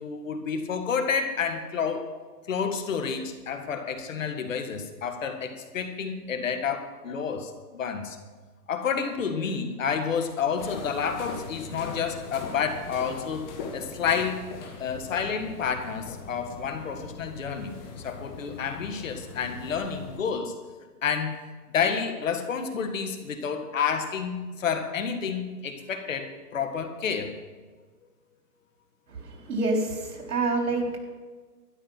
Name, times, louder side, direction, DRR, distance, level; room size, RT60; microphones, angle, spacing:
voice 1, 0.0-2.1 2.5-8.2 8.7-13.5 13.7-14.5 14.8-17.7 18.0-20.6 21.0-21.4 21.7-27.4, left 6 dB, 55° left, 7 dB, 1.7 m, -29 dB
sound 1, 10.6-20.2, left 4 dB, 15° left, 0.9 m, -41 dB
voice 2, 29.2-31.0, right 2 dB, 65° right, 1 dB, 4.2 m, -27 dB
12.5 x 11.0 x 5.8 m, 1.4 s
hypercardioid pair, 150°, 48 cm